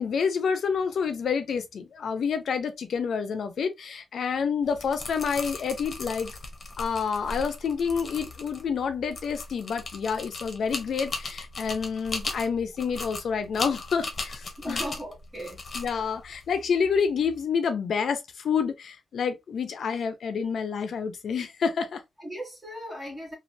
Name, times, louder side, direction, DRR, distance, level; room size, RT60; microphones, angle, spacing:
voice 1, 0.0-6.3 6.8-14.8 15.7-22.0, left 6 dB, 70° left, 0.5 m, -28 dB
sound 1, 4.6-17.4, left 3 dB, 40° left, 0.8 m, -38 dB
voice 2, 14.6-15.6 22.2-23.3, equal, 15° right, 1.1 m, -37 dB
3.1 x 2.4 x 2.6 m
wide cardioid pair, 150°, 0 cm